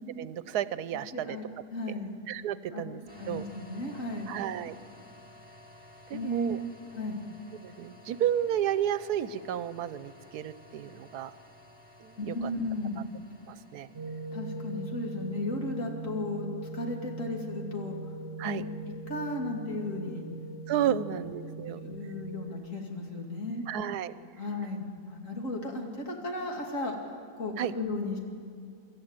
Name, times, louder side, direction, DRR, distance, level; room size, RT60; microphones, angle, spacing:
voice 1, 0.2-1.4 2.3-3.0 3.3-3.5 4.3-4.7 6.1-6.6 7.6-11.3 12.0-12.5 13.5-13.9 18.4-18.6 20.7-21.8 23.7-24.1 27.6-27.7, right 10 dB, 85° right, 16 dB, 1.2 m, -32 dB
voice 2, 0.9-1.4 1.7-2.2 2.7-4.4 6.1-6.7 6.9-7.2 12.2-13.0 14.3-16.5 16.7-18.0 18.4-18.6 19.1-20.2 20.8-21.0 21.8-23.7 24.4-27.0 27.4-28.2, left 2 dB, 55° left, 1 dB, 2.9 m, -35 dB
sound 1, 3.1-15.7, left 1 dB, 5° right, 2.6 m, -54 dB
sound 2, 13.9-22.5, right 2 dB, 50° right, 1.1 m, -40 dB
24.5 x 13.5 x 8.8 m, 2.3 s
omnidirectional pair, 1.6 m